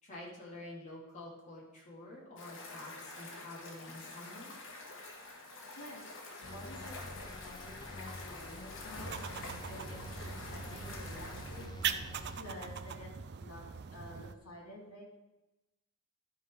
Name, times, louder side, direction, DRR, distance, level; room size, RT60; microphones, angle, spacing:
voice 1, 0.0-4.5, left 2 dB, 35° left, -6 dB, 3.7 m, -48 dB
sound 1, 2.4-11.7, left 2 dB, 60° left, 2.0 m, -48 dB
voice 2, 5.7-11.7 12.4-13.1 13.4-13.6 13.9-15.0, left 1 dB, 80° left, -1 dB, 3.1 m, -50 dB
sound 2, 6.4-12.7, left 2 dB, 20° left, 0.5 m, -48 dB
sound 3, 9.0-14.4, right 7 dB, 50° right, 0.5 m, -41 dB
12.0 x 5.1 x 5.2 m, 1.0 s
head